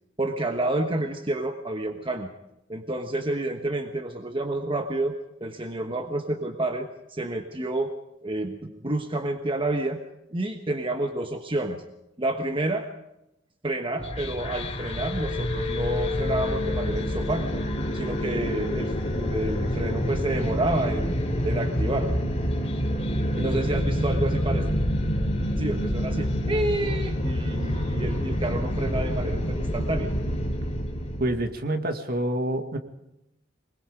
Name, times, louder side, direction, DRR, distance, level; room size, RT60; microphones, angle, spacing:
voice 1, 0.2-2.3 2.7-5.1 5.4-7.9 8.2-10.0 10.3-11.8 12.2-12.9 13.6-17.6 17.9-21.2 21.4-22.1 23.4-24.7 25.6-30.1, right 2 dB, 30° right, 5 dB, 1.3 m, -29 dB
sound 1, 14.0-31.4, equal, 35° left, 3.1 m, -27 dB
voice 2, 31.2-32.8, right 1 dB, 55° right, 6 dB, 2.2 m, -28 dB
24.0 x 21.5 x 5.1 m, 0.87 s
head